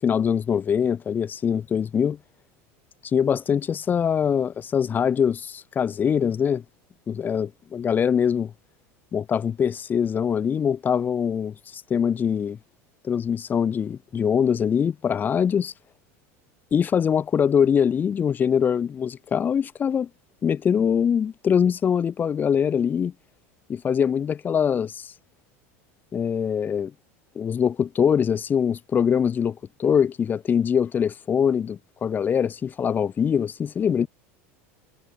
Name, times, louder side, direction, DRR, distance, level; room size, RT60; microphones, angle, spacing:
voice 1, 0.0-2.2 3.0-6.6 7.1-8.5 9.1-12.6 13.0-15.7 16.7-20.1 20.4-23.1 23.7-25.1 26.1-26.9 27.3-34.1, left 7 dB, 25° left, 5.1 m, -23 dB
supercardioid pair, 135°, 7 cm